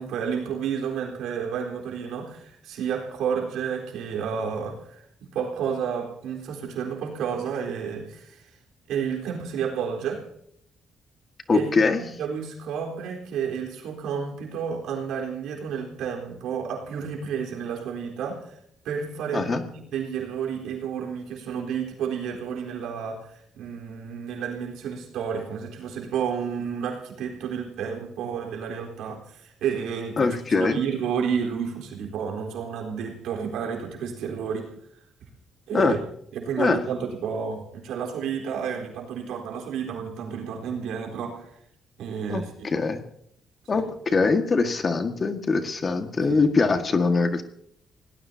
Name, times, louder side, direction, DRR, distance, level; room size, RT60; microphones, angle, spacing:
voice 1, 0.0-8.5 8.9-10.2 11.5-18.6 18.8-34.7 35.7-36.0 36.3-41.5 42.0-42.7 43.7-43.8 46.3-46.4, right 7 dB, 85° right, 1 dB, 4.0 m, -31 dB
voice 2, 11.5-12.0 19.3-19.6 30.2-30.8 35.7-36.0 36.6-36.8 42.3-43.0 43.7-47.4, left 4 dB, 40° left, 7 dB, 1.8 m, -23 dB
26.5 x 18.0 x 2.9 m, 0.70 s
cardioid pair, 90°, 0 cm